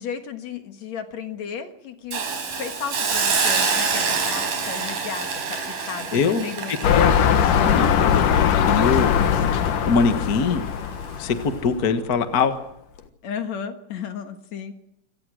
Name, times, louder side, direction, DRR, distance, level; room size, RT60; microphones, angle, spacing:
voice 1, 0.0-2.2 2.5-7.4 13.2-14.7, left 7 dB, 60° left, 7 dB, 2.7 m, -34 dB
Hiss, 2.1-9.1 9.5-9.7, right 5 dB, 80° right, 6.0 m, -26 dB
voice 2, 6.1-6.4 6.9-8.2 8.6-9.1 9.9-10.6 11.2-11.3 11.6-12.5, left 5 dB, 40° left, 8 dB, 1.4 m, -22 dB
sound 1, 6.8-11.8 12.4-12.5, left 8 dB, 80° left, 3.0 m, -20 dB
27.5 x 17.5 x 6.4 m, 0.80 s
omnidirectional pair, 3.7 m